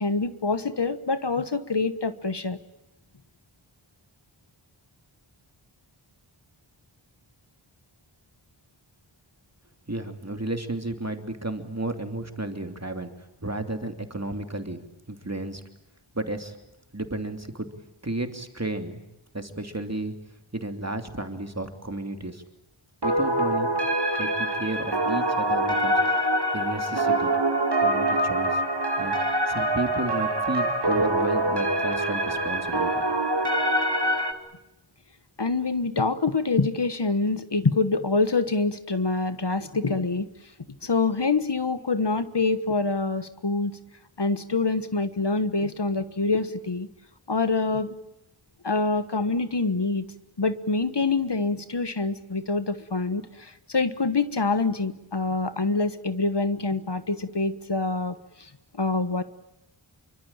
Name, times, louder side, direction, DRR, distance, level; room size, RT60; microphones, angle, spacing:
voice 1, 0.0-2.6 35.4-40.3 40.8-43.8 44.2-46.9 47.3-47.9 48.6-59.2, left 3 dB, 55° left, 12 dB, 1.4 m, -26 dB
voice 2, 9.9-13.1 13.4-15.6 16.1-16.6 16.9-17.7 18.0-19.0 19.3-20.1 20.5-22.4 23.0-23.7 24.2-26.3 26.5-27.3 27.8-28.6 29.0-29.2 29.5-33.1, right 2 dB, 30° right, 6 dB, 3.0 m, -32 dB
sound 1, 23.0-34.3, right 1 dB, 55° right, 2.7 m, -24 dB
27.5 x 24.0 x 8.9 m, 0.87 s
wide cardioid pair, 50°, 48 cm